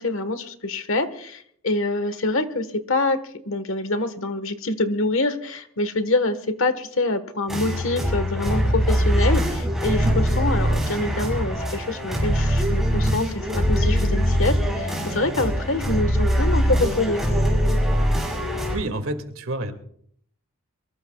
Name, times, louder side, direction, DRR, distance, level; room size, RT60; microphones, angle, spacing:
voice 1, 0.0-3.2 3.4-17.2, left 2 dB, 65° left, 10 dB, 1.4 m, -25 dB
sound 1, 7.5-18.8, equal, ahead, 5.8 m, -22 dB
voice 2, 18.7-19.7, right 1 dB, 70° right, 6 dB, 2.3 m, -28 dB
23.5 x 21.0 x 2.3 m, 0.64 s
head